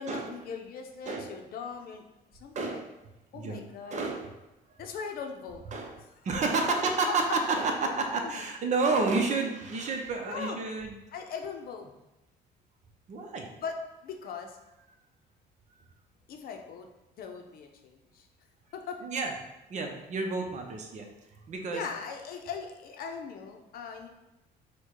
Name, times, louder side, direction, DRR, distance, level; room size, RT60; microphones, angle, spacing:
voice 1, 0.0-2.0 2.3-2.8 3.3-4.0 4.8-5.6 7.3-7.4 7.9-8.0 8.2-8.4 9.3-9.5 10.3-10.6 11.1-11.9 13.5-13.8 14.0-14.6 16.3-16.9 17.2-18.3 18.7-19.0 21.7-24.1, left 6 dB, 60° left, 4 dB, 0.7 m, -40 dB
voice 2, 2.5-2.9 3.3-3.6 3.9-4.3 5.7-6.0 6.2-10.9 13.1-13.5 19.0-19.3 19.7-21.1 21.5-21.8, right 3 dB, 45° right, 3 dB, 0.8 m, -30 dB
4.5 x 2.3 x 4.5 m, 0.97 s
cardioid pair, 110°, 17 cm